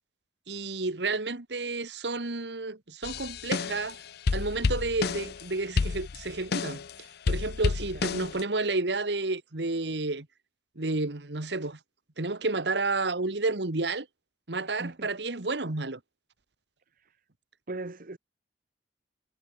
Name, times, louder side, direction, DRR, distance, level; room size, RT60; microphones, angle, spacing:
voice 1, 0.5-4.0 4.3-6.8 7.3-10.3 10.7-11.8 12.2-14.1 14.5-16.0, right 3 dB, 70° right, 1.7 m, -31 dB
sound 1, 3.0-4.0 4.3-5.5 5.8-6.9 7.3-8.4, left 4 dB, 65° left, 0.5 m, -30 dB
voice 2, 17.7-18.2, right 2 dB, 55° right, 1.1 m, -38 dB
head